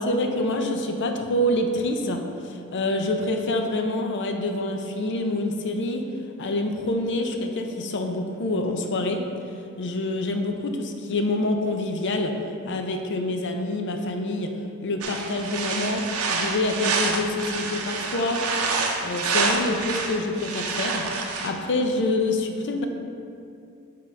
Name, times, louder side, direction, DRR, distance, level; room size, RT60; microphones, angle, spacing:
voice 1, 0.0-6.0 6.4-9.2 9.8-12.3 12.6-14.5 14.8-16.0 16.3-18.4 19.0-21.1 21.4-22.9, left 2 dB, 55° left, 4 dB, 0.5 m, -26 dB
sound 1, 15.0-21.5, right 4 dB, 70° right, 0.7 m, -27 dB
9.0 x 3.8 x 3.3 m, 2.5 s
head